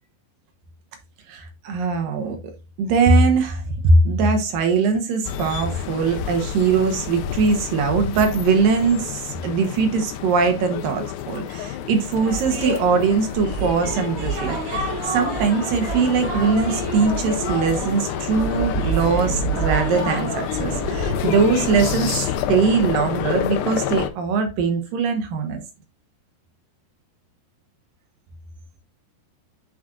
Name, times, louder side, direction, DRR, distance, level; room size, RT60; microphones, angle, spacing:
voice 1, 1.3-2.4 2.8-25.6, right 4 dB, 70° right, 2.3 m, -21 dB
sound 1, 5.2-24.1, left 10 dB, 80° left, 2.7 m, -29 dB
sound 2, 12.2-22.2, right 4 dB, 45° right, 5.9 m, -29 dB
9.7 x 5.1 x 2.5 m
omnidirectional pair, 5.0 m